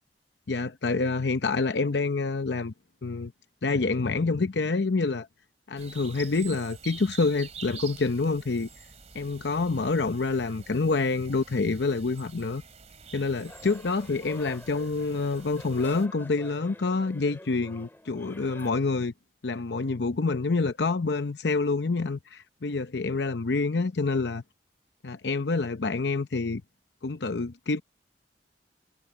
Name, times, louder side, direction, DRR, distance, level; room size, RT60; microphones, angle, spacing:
voice 1, 0.5-2.7 3.0-3.3 3.6-5.3 5.7-8.7 9.1-12.6 13.1-19.1 19.4-24.4 25.0-26.6 27.0-27.8, left 3 dB, 70° left, 0.7 m, -27 dB
sound 1, 5.8-16.1, right 6 dB, 40° right, 2.8 m, -47 dB
sound 2, 13.4-18.7, left 1 dB, 15° left, 2.0 m, -48 dB
head